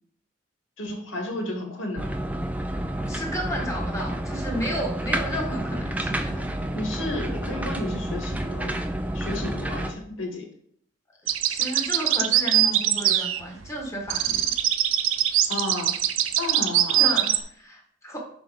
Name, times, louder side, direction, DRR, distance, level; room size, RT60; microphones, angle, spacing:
voice 1, 0.8-2.1 6.7-8.8 9.1-10.5 15.5-15.9 16.4-17.3, left 2 dB, 80° left, 0 dB, 2.1 m, -32 dB
sound 1, 2.0-9.9, right 1 dB, 10° right, 0.5 m, -29 dB
voice 2, 3.1-6.4 11.5-14.4 17.0-18.2, equal, 15° left, 0 dB, 1.6 m, -32 dB
sound 2, 11.3-13.8 14.1-17.4, right 11 dB, 85° right, 0.5 m, -22 dB
6.0 x 4.7 x 5.2 m, 0.64 s
head